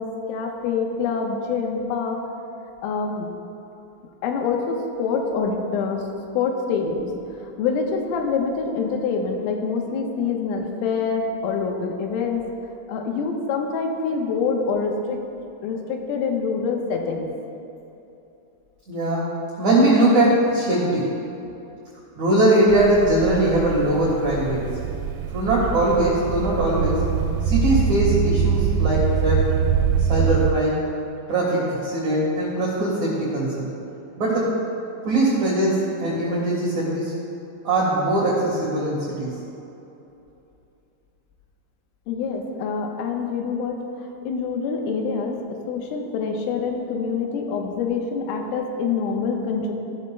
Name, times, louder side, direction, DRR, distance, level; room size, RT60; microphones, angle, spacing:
voice 1, 0.0-2.2 2.8-3.3 4.2-6.0 6.4-7.1 7.6-12.4 12.9-15.2 15.6-17.3 42.1-45.4 45.7-49.7, left 5 dB, 80° left, 1 dB, 3.6 m, -25 dB
voice 2, 18.9-21.1 22.2-24.8 25.3-27.0 27.4-29.5 30.1-30.9 31.3-33.7 34.2-34.5 35.0-37.1 37.6-39.4, right 1 dB, 75° right, -6 dB, 1.7 m, -21 dB
sound 1, 22.7-30.5, right 7 dB, 90° right, 3.3 m, -23 dB
16.5 x 12.0 x 2.2 m, 2.9 s
omnidirectional pair, 6.0 m